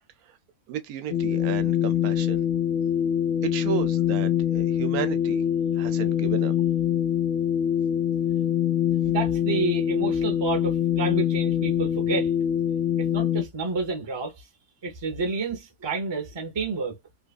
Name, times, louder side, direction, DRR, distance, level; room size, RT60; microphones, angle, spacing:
voice 1, 0.7-2.4 3.4-5.4 5.7-6.5, right 10 dB, 80° right, 1.0 m, -33 dB
sound 1, 1.1-13.4, left 10 dB, 90° left, 1.1 m, -24 dB
voice 2, 9.1-12.3 13.0-14.4 14.8-16.9, right 4 dB, 25° right, 0.6 m, -29 dB
2.8 x 2.4 x 2.3 m
omnidirectional pair, 1.6 m